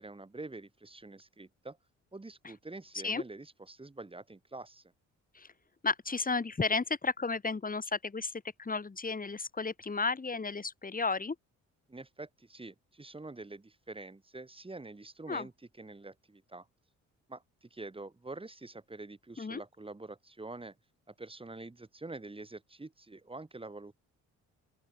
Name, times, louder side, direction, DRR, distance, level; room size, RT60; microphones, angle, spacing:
voice 1, 0.0-1.8 2.1-4.8 11.9-15.5 15.8-16.7 17.3-20.7 21.1-23.9, right 2 dB, 20° right, 5.9 m, -46 dB
voice 2, 5.8-8.3 8.6-11.4 15.3-15.5 19.4-19.6, left 4 dB, 30° left, 6.3 m, -33 dB
open air
cardioid pair, 90°, 30 cm